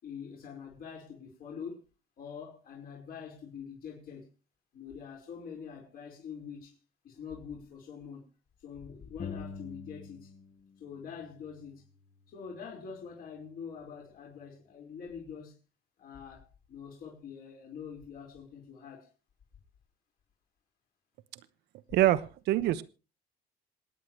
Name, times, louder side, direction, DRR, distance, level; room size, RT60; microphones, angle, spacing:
voice 1, 0.0-1.8 2.2-4.3 4.7-6.8 7.0-8.2 8.6-10.3 10.8-11.9 12.3-15.6 16.0-19.1, left 6 dB, 60° left, 5.1 m, -45 dB
sound 1, 9.2-10.7 11.0-12.7, left 5 dB, 40° left, 1.3 m, -46 dB
voice 2, 21.9-22.8, right 14 dB, 80° right, 1.0 m, -25 dB
27.0 x 9.5 x 3.2 m
cardioid pair, 110°, 17 cm